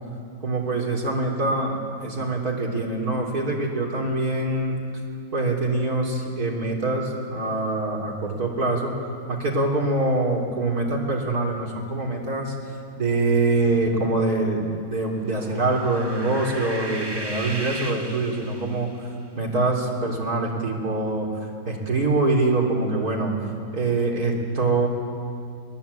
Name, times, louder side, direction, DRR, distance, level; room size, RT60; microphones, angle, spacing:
voice 1, 0.4-4.8 5.3-9.0 9.3-12.5 13.0-21.4 21.7-23.3 23.7-24.9, right 2 dB, 50° right, 0 dB, 3.8 m, -24 dB
sound 1, 15.2-19.0, right 1 dB, 15° right, 1.1 m, -35 dB
21.5 x 21.0 x 8.4 m, 2.3 s
omnidirectional pair, 2.1 m